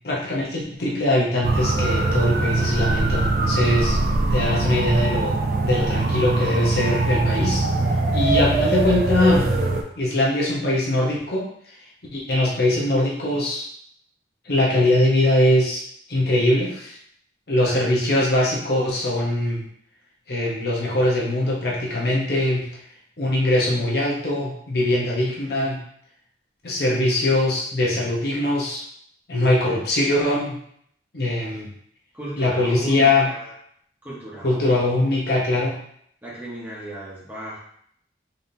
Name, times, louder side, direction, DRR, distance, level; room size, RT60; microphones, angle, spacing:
voice 1, 0.0-4.0 4.3-7.6 8.1-9.5 10.0-11.8 12.1-13.6 14.4-15.8 16.1-17.0 17.5-19.7 20.3-22.8 23.2-25.8 26.6-28.8 29.3-30.6 31.1-31.7 32.4-33.3 34.4-35.8, left 1 dB, 55° left, -4 dB, 0.9 m, -22 dB
sound 1, 1.4-9.8, right 2 dB, 50° right, 0.5 m, -22 dB
voice 2, 17.6-18.0 32.1-33.5 34.0-34.9 36.2-37.6, right 1 dB, 10° right, -9 dB, 1.3 m, -36 dB
4.0 x 3.5 x 2.7 m, 0.66 s
head